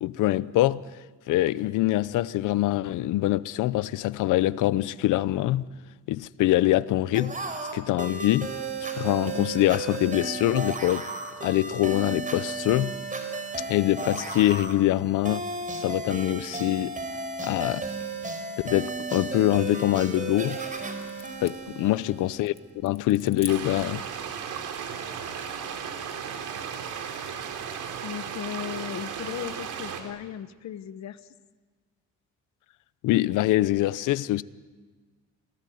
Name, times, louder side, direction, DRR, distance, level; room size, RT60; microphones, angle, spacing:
voice 1, 0.0-0.8 1.3-5.6 6.1-7.3 7.7-8.5 8.9-11.0 11.4-12.9 13.7-15.4 15.7-17.0 17.4-17.9 18.6-20.6 21.4-22.5 22.8-24.0 33.0-34.4, left 15 dB, 90° left, 0.8 m, -24 dB
sound 1, 7.1-22.6, right 3 dB, 25° right, 4.6 m, -34 dB
sound 2, 19.5-24.0, left 3 dB, 20° left, 2.9 m, -47 dB
sound 3, 23.5-30.0, right 7 dB, 85° right, 3.8 m, -35 dB
voice 2, 28.0-31.3, left 10 dB, 65° left, 1.2 m, -37 dB
28.5 x 19.5 x 9.4 m
cardioid pair, 90°, 30 cm